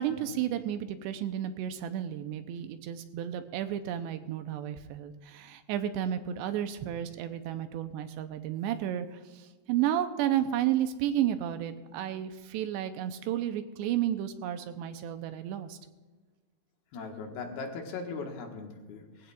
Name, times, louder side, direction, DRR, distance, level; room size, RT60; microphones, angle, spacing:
voice 1, 0.0-15.8, right 11 dB, 85° right, 8 dB, 2.8 m, -32 dB
voice 2, 16.9-19.3, left 4 dB, 65° left, 2 dB, 3.1 m, -39 dB
21.0 x 16.0 x 2.5 m, 1.3 s
omnidirectional pair, 5.1 m